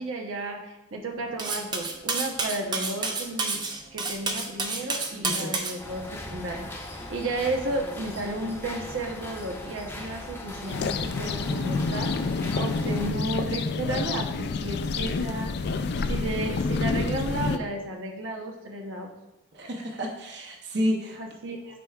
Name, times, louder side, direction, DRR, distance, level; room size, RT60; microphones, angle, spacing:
voice 1, 0.0-3.6 3.9-12.1 12.5-15.5 16.1-19.1 21.1-21.7, right 2 dB, 85° right, 1 dB, 0.9 m, -33 dB
Cutlery silverware, 1.4-5.8, right 3 dB, 20° right, 0.5 m, -29 dB
voice 2, 5.1-5.5 19.5-21.2, equal, 55° right, 1 dB, 0.8 m, -30 dB
sound 1, 5.8-13.1, left 1 dB, 10° left, 0.7 m, -39 dB
sound 2, 10.7-17.6, left 4 dB, 55° left, 0.3 m, -28 dB
9.8 x 4.6 x 2.3 m, 0.99 s
head